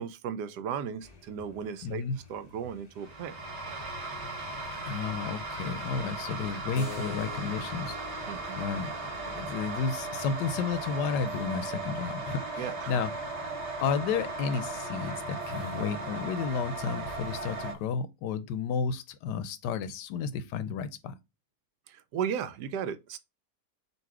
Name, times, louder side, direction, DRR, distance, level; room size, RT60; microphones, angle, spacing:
voice 1, 0.0-2.0 2.3-3.3 8.3-8.6 12.6-13.0 21.9-23.2, right 8 dB, 80° right, 1.2 m, -35 dB
sound 1, 0.8-18.0, left 2 dB, 30° left, 0.8 m, -54 dB
voice 2, 1.8-2.2 4.8-8.3 8.6-8.9 9.2-13.1 13.8-21.2, left 6 dB, 90° left, 1.2 m, -32 dB
sound 2, 3.0-17.7, right 3 dB, 45° right, 1.1 m, -37 dB
Keyboard (musical), 6.7-11.9, left 5 dB, 70° left, 1.8 m, -47 dB
4.0 x 2.7 x 4.6 m
omnidirectional pair, 1.8 m